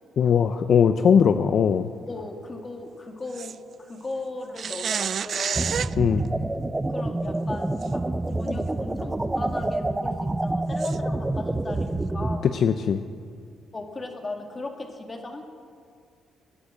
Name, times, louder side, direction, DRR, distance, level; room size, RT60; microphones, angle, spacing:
voice 1, 0.2-1.9 6.0-6.2 12.5-13.0, left 7 dB, 60° left, 9 dB, 0.6 m, -20 dB
voice 2, 2.1-5.8 6.9-8.0 8.4-12.5 13.7-15.4, left 2 dB, 30° left, 4 dB, 2.2 m, -37 dB
sound 1, 3.3-3.6 4.6-5.9 7.8-7.9 8.5-8.6 10.8-11.0, right 7 dB, 55° right, 0.3 m, -29 dB
sound 2, 5.5-12.4, right 2 dB, 15° right, 0.7 m, -27 dB
17.0 x 10.0 x 7.3 m, 2.1 s
cardioid pair, 90°, 0 cm